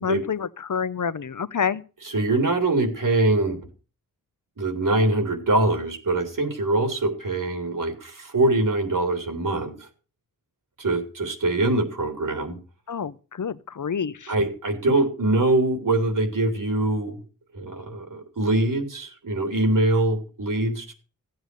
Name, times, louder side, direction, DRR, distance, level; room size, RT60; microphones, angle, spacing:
voice 1, 0.0-1.8 12.9-14.3, left 7 dB, 65° left, 0.9 m, -28 dB
voice 2, 2.0-3.6 4.6-9.9 10.8-12.6 14.3-17.2 17.5-20.9, right 2 dB, 75° right, 3.3 m, -23 dB
15.5 x 8.0 x 6.9 m
wide cardioid pair, 65°, 32 cm